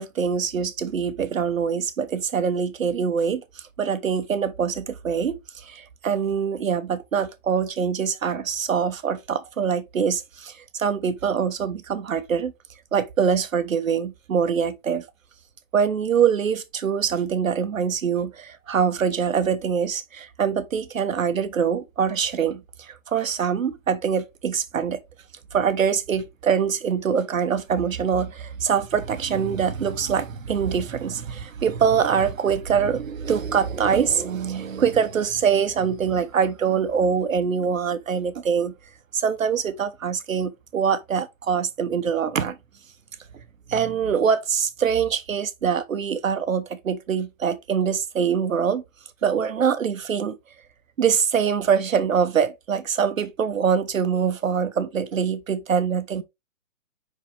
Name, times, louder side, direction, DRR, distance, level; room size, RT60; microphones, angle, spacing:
voice 1, 0.0-3.4 3.8-12.5 12.9-15.0 15.7-25.0 25.5-38.7 39.1-42.6 43.7-48.8 49.2-50.4 51.0-56.2, right 7 dB, 85° right, 1.2 m, -24 dB
5.8 x 5.1 x 3.3 m
hypercardioid pair, 160°, 39 cm